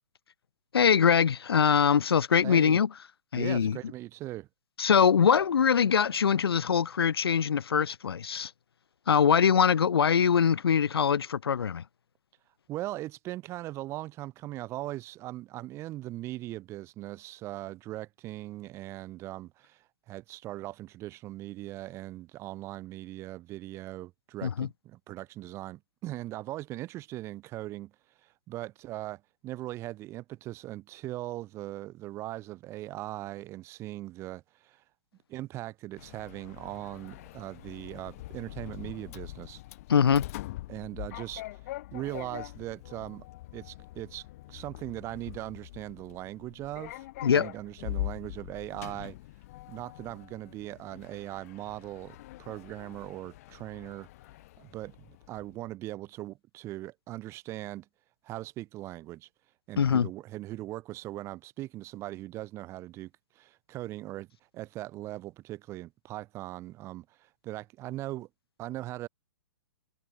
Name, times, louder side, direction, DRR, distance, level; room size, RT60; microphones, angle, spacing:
voice 1, 0.7-2.9 3.3-3.8 4.8-8.5 9.1-11.8 24.4-24.7 39.9-40.2 47.2-47.5 59.8-60.1, left 7 dB, 85° left, 1.2 m, -23 dB
voice 2, 2.4-2.8 3.3-4.5 12.7-27.9 28.2-34.8 35.3-39.6 40.7-41.4 41.9-43.3 43.5-49.2 49.7-54.1 54.6-57.9 58.2-59.3 59.7-64.3 64.5-68.3 68.6-69.1, right 16 dB, 20° right, 4.3 m, -40 dB
Sliding door, 36.0-55.6, left 17 dB, 40° left, 2.6 m, -43 dB
hypercardioid pair, 155°, 12 cm